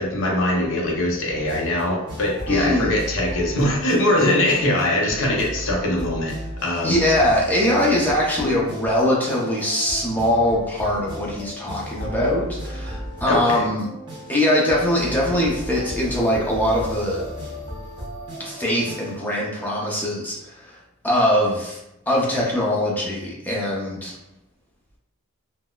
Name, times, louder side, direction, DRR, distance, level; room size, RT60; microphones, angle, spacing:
voice 1, 0.0-6.4 6.6-7.0 13.3-13.7, left 1 dB, 65° left, -1 dB, 0.6 m, -22 dB
sound 1, 1.3-19.2, equal, 20° right, 0.8 m, -35 dB
voice 2, 2.5-3.0 6.8-13.9 14.3-17.2 18.4-20.8 21.0-21.8 22.1-24.2, left 1 dB, 10° left, -4 dB, 0.5 m, -22 dB
3.8 x 2.1 x 2.3 m, 0.89 s
head